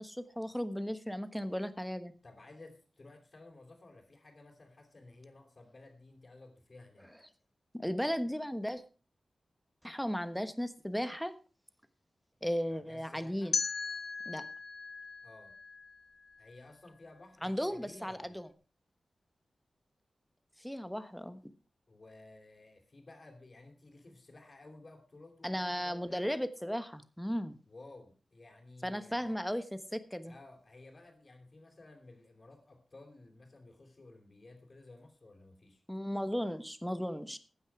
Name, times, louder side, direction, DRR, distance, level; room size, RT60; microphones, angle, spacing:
voice 1, 0.0-2.1 7.7-8.8 9.8-11.3 12.4-13.5 14.3-14.4 17.4-18.5 20.6-21.4 25.4-27.6 28.8-30.3 35.9-37.4, equal, ahead, 11 dB, 1.2 m, -36 dB
voice 2, 2.2-7.1 12.7-13.6 15.2-15.6 16.4-18.4 21.9-26.3 27.7-29.5 30.3-35.8, left 2 dB, 35° left, -2 dB, 3.5 m, -55 dB
sound 1, 13.5-16.5, left 4 dB, 55° left, 1.3 m, -38 dB
14.5 x 9.8 x 4.9 m, 0.35 s
wide cardioid pair, 105°, 0 cm